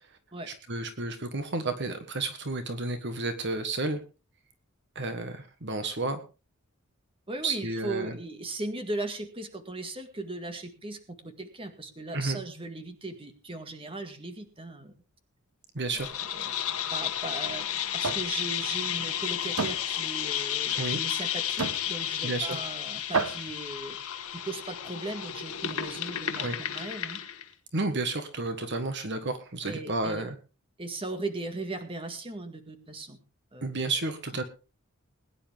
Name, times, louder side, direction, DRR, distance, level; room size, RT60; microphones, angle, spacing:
voice 1, 0.5-4.0 4.9-6.2 7.4-8.2 12.1-12.4 15.7-16.1 20.7-21.0 22.2-22.6 26.3-26.6 27.7-30.3 33.6-34.4, right 2 dB, 55° right, 8 dB, 1.4 m, -31 dB
voice 2, 7.3-14.9 15.9-16.1 16.9-17.7 17.9-24.0 24.4-27.2 29.6-30.3 30.8-33.2 33.5-33.7, right 2 dB, 25° right, 7 dB, 1.9 m, -38 dB
sound 1, 16.0-27.5, left 10 dB, 80° left, 1.4 m, -32 dB
sound 2, 18.0-18.3 18.7-18.9 19.6-19.8 20.7-20.8 21.6-21.8 22.7-22.8 23.1-23.6, right 4 dB, 75° right, 1.1 m, -30 dB
21.0 x 10.0 x 3.6 m, 0.34 s
head